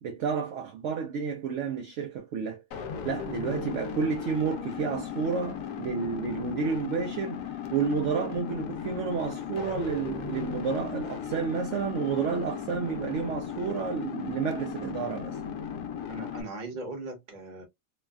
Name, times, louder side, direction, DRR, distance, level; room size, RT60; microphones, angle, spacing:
voice 1, 0.0-2.6 3.0-7.4 7.7-15.4, right 6 dB, 65° right, 0.7 m, -30 dB
sound 1, 2.7-16.4, left 8 dB, 75° left, 1.1 m, -36 dB
voice 2, 16.1-17.6, right 2 dB, 35° right, 0.9 m, -39 dB
3.1 x 2.2 x 2.2 m
omnidirectional pair, 1.7 m